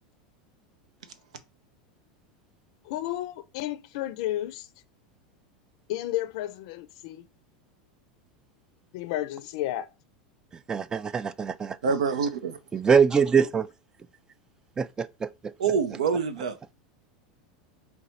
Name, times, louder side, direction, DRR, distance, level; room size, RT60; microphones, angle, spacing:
voice 1, 2.8-4.7 5.9-7.2 8.9-9.9, left 14 dB, 65° left, 0.5 m, -32 dB
voice 2, 10.7-11.8 12.7-13.7 14.8-15.5, right 6 dB, 20° right, 0.4 m, -23 dB
voice 3, 11.8-12.6 15.6-16.6, right 6 dB, 85° right, 0.7 m, -26 dB
4.2 x 2.3 x 4.1 m
hypercardioid pair, 100°, 4 cm